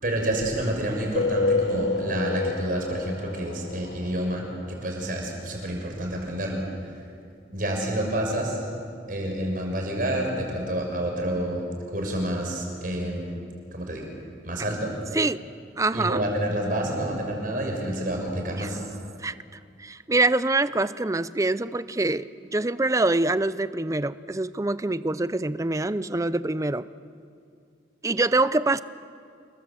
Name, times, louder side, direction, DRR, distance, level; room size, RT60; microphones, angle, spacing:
voice 1, 0.0-6.9 7.5-8.6 9.1-13.4 13.7-14.0 14.4-15.2 15.9-18.8, right 1 dB, 50° right, 1 dB, 6.2 m, -29 dB
sound 1, 1.1-4.7, left 3 dB, 75° left, 1.3 m, -28 dB
voice 2, 15.8-16.2 18.6-18.7 19.2-19.3 19.8-26.9 28.0-28.8, right 2 dB, 15° right, 15 dB, 0.5 m, -25 dB
28.0 x 22.5 x 7.7 m, 2.4 s
head